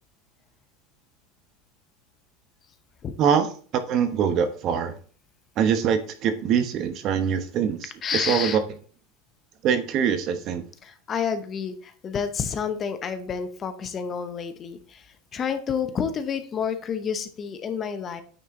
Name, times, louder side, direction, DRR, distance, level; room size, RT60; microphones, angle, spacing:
voice 1, 3.2-4.9 5.6-8.6 9.6-10.6, right 7 dB, 45° right, 9 dB, 1.0 m, -24 dB
voice 2, 8.0-8.6 10.8-15.0 15.3-18.2, left 7 dB, 30° left, 9 dB, 0.8 m, -29 dB
9.0 x 4.3 x 3.7 m, 0.44 s
supercardioid pair, 135°, 0 cm